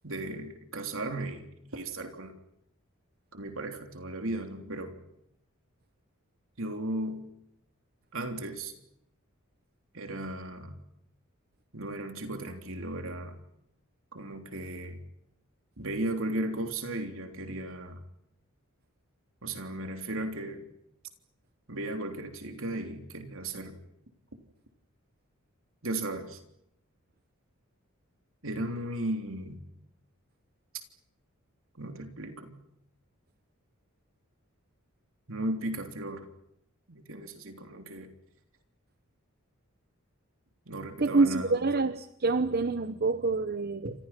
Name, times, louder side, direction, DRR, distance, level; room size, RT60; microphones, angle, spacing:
voice 1, 0.0-1.4 1.7-2.3 3.3-5.0 6.6-7.2 8.1-8.7 9.9-10.8 11.7-13.4 14.1-15.0 15.8-18.0 19.4-20.7 21.7-23.8 25.8-26.4 28.4-29.6 31.8-32.6 35.3-36.3 36.9-38.1 40.6-41.6, right 1 dB, 65° right, 5 dB, 3.4 m, -36 dB
voice 2, 41.0-43.9, right 3 dB, 45° right, 12 dB, 0.9 m, -26 dB
29.0 x 27.0 x 6.0 m, 0.79 s
head